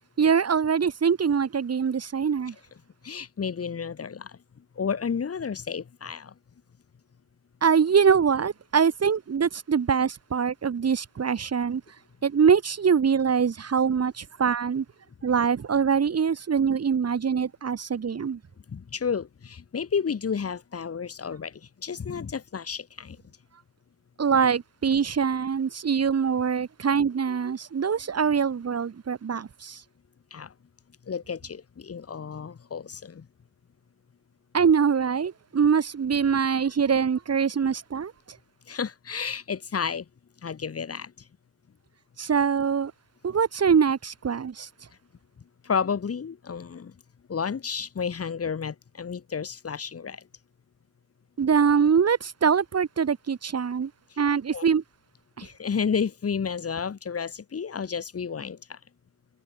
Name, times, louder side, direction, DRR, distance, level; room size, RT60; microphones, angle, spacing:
voice 1, 0.2-2.5 7.6-11.8 12.2-14.8 15.2-18.4 24.2-29.8 34.5-38.1 42.2-42.9 43.2-44.7 51.4-53.9 54.2-54.8 55.4-55.5, right 6 dB, 50° right, 5.8 m, -23 dB
voice 2, 3.0-6.3 18.7-23.2 30.3-30.5 31.1-33.3 38.7-40.1 40.4-41.3 45.6-47.0 47.3-50.3 54.1-54.2 54.5-54.6 55.4-58.8, left 6 dB, 50° left, 4.2 m, -31 dB
cardioid pair, 90°, 31 cm